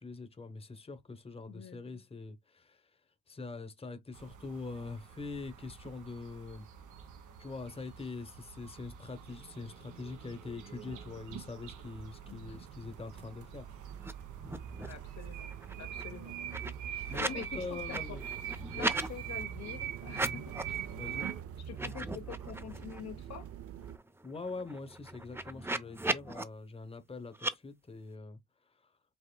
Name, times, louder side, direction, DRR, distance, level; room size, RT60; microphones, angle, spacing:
voice 1, 0.0-2.8 3.3-6.7 7.4-13.7 17.1-18.3 20.2-20.4 20.9-21.3 24.2-28.4, left 3 dB, 20° left, 1.0 m, -43 dB
voice 2, 1.5-1.8 12.3-12.6 14.8-16.4 16.9-18.2 18.7-20.6 21.6-23.5, left 9 dB, 60° left, 1.0 m, -46 dB
sound 1, 4.1-21.4, right 9 dB, 90° right, 1.4 m, -45 dB
sound 2, 11.6-24.0, right 9 dB, 50° right, 0.6 m, -46 dB
sound 3, 14.0-14.1 14.4-15.0 15.4-17.5 17.8-19.1 20.0-20.8 21.2-21.3 21.7-23.0 23.4-23.5 23.8-26.4 27.3-27.5, right 2 dB, 10° right, 0.6 m, -37 dB
5.6 x 3.5 x 2.2 m
cardioid pair, 90°, 30 cm